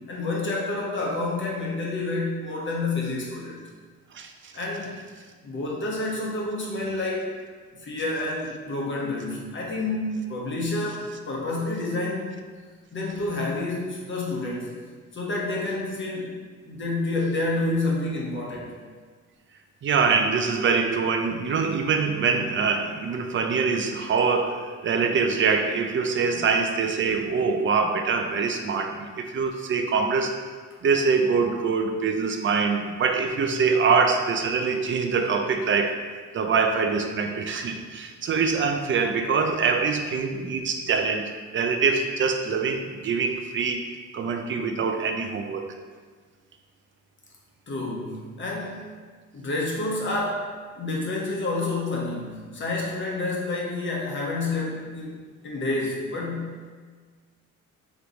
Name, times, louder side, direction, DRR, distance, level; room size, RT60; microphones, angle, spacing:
voice 1, 0.1-3.6 4.5-5.0 5.4-7.3 7.8-12.4 12.9-14.8 15.1-16.3 16.7-18.7 47.7-48.8 49.3-50.5 50.8-55.2 55.4-56.7, left 2 dB, 40° left, -3 dB, 1.1 m, -29 dB
voice 2, 4.1-4.5 19.8-30.4 30.8-36.0 36.3-43.9 44.1-45.7, right 5 dB, 40° right, 5 dB, 0.5 m, -24 dB
3.4 x 3.0 x 3.9 m, 1.5 s
cardioid pair, 90°, 30 cm